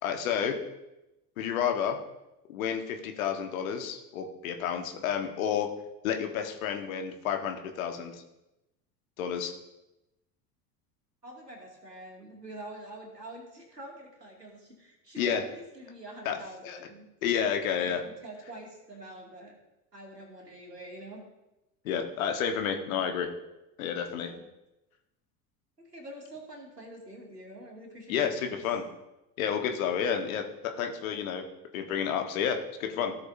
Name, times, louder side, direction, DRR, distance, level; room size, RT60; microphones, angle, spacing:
voice 1, 0.0-0.6 1.4-2.0 2.5-5.7 6.0-8.2 9.2-9.6 15.2-15.4 16.2-16.4 16.6-16.8 17.2-18.0 21.8-23.3 23.8-24.3 28.1-28.8 29.4-31.4 31.7-33.2, left 8 dB, 60° left, 5 dB, 1.4 m, -30 dB
voice 2, 11.2-17.1 17.8-19.5 19.9-21.3 24.1-24.4 25.8-28.7, right 1 dB, 90° right, -1 dB, 2.4 m, -46 dB
16.5 x 6.6 x 2.7 m, 0.95 s
figure-of-eight pair, 70°, 47 cm